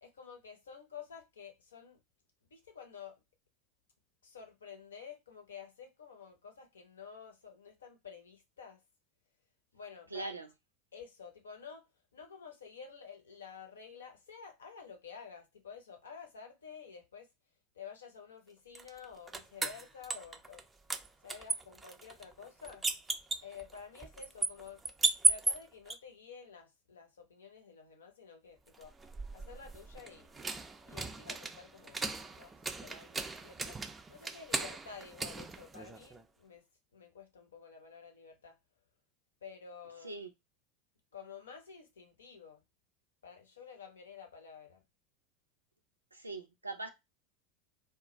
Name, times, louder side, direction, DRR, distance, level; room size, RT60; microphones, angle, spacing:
voice 1, 0.0-2.0 2.5-3.2 4.2-8.8 9.7-10.4 10.9-11.8 12.1-17.3 17.7-20.6 21.2-22.9 23.4-24.8 25.3-28.9 29.3-30.5 30.8-32.0 32.3-33.8 34.1-36.6 36.9-38.6 39.4-40.2 41.1-42.6 43.2-44.8, left 6 dB, 75° left, 0.7 m, -51 dB
voice 2, 10.1-10.5 40.0-40.3 46.1-46.9, right 3 dB, 85° right, 0.5 m, -41 dB
sound 1, 18.7-20.6 20.9-25.9 28.7-36.2, right 3 dB, 15° right, 0.4 m, -36 dB
2.3 x 2.1 x 3.9 m
figure-of-eight pair, 80°, 0 cm